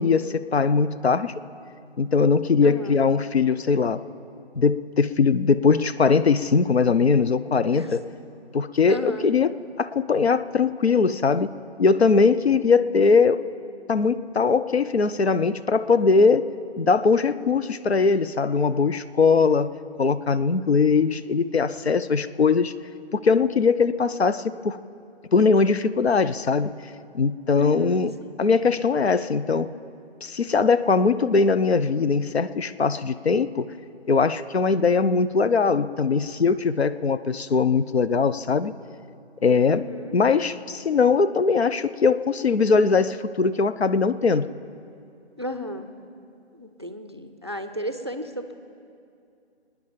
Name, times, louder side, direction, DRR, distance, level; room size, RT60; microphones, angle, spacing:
voice 1, 0.0-1.3 2.0-4.0 4.6-8.0 8.5-9.5 9.8-11.5 11.8-13.4 13.9-16.5 16.8-19.7 20.0-22.7 23.1-24.8 25.3-26.8 27.1-28.1 28.4-29.7 30.2-33.7 34.1-38.7 39.4-39.8 40.1-44.5, left 4 dB, 70° left, 14 dB, 0.7 m, -21 dB
voice 2, 2.6-3.0 7.7-8.0 8.9-9.3 27.5-28.4 39.7-40.2 45.4-45.9 46.5-48.5, left 1 dB, 25° right, 7 dB, 0.5 m, -34 dB
25.5 x 9.9 x 5.2 m, 2.5 s
figure-of-eight pair, 160°, 33 cm